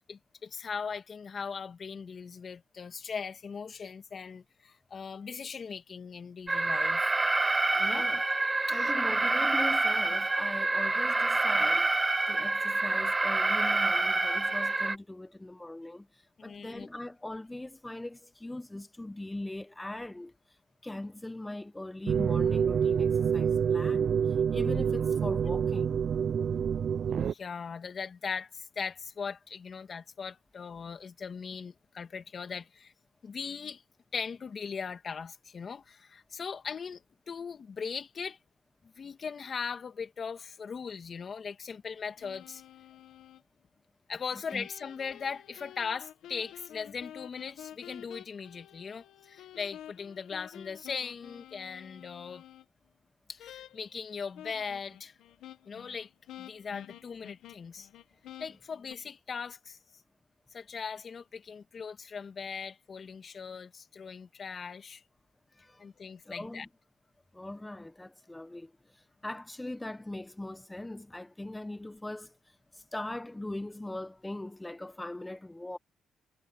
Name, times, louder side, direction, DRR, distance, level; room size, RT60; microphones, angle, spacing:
voice 1, 0.1-7.1 7.8-8.1 8.7-8.9 16.4-16.9 27.1-32.9 33.2-33.8 34.1-38.4 39.0-42.6 44.1-52.4 53.3-55.2 55.7-56.1 56.4-57.9 58.4-59.8 60.5-65.0 65.8-66.7, left 6 dB, 45° left, 2.6 m, -39 dB
Alarm, 6.5-15.0, right 3 dB, 20° right, 0.6 m, -27 dB
voice 2, 7.7-8.2 8.7-11.9 12.3-16.1 16.4-20.3 20.8-24.1 24.5-26.0 44.5-44.7 65.6-65.8 66.2-66.7 67.3-68.7 69.2-72.3 72.7-75.8, left 1 dB, 10° left, 1.3 m, -40 dB
sound 1, 22.1-27.3, right 7 dB, 55° right, 0.7 m, -27 dB
sound 2, 42.2-43.4 44.5-52.7 53.4-54.0 54.4-59.0, left 11 dB, 80° left, 1.8 m, -50 dB
cardioid pair, 90°, 0 cm